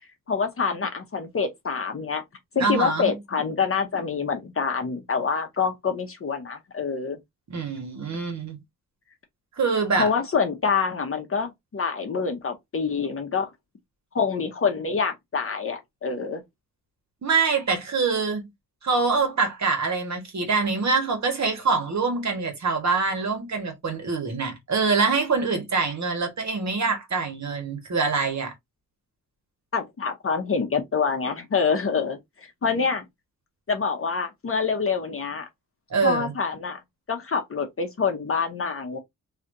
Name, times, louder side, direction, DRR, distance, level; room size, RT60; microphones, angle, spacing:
voice 1, 0.3-2.2 2.5-7.2 10.0-13.5 14.1-16.4 29.7-32.2 32.6-33.0 33.7-35.5 36.0-36.8 37.1-39.0, left 5 dB, 40° left, 0.8 m, -26 dB
voice 2, 2.6-3.1 7.5-8.6 9.6-10.1 17.2-18.5 18.8-28.5 35.9-36.3, right 4 dB, 55° right, 1.4 m, -25 dB
3.2 x 2.8 x 2.6 m
wide cardioid pair, 100°, 33 cm